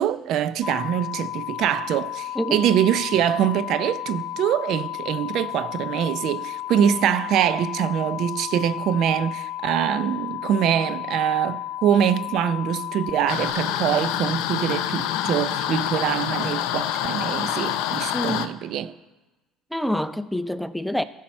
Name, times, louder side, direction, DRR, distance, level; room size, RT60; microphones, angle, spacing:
voice 1, 0.0-18.9, right 9 dB, 65° right, 0.5 m, -24 dB
sound 1, 0.6-13.5, left 13 dB, 35° left, 0.9 m, -33 dB
sound 2, 13.3-18.5, left 11 dB, 80° left, 0.5 m, -26 dB
voice 2, 18.1-18.5 19.7-21.0, left 1 dB, 5° left, 0.5 m, -26 dB
15.0 x 5.8 x 4.3 m
supercardioid pair, 85°, 0 cm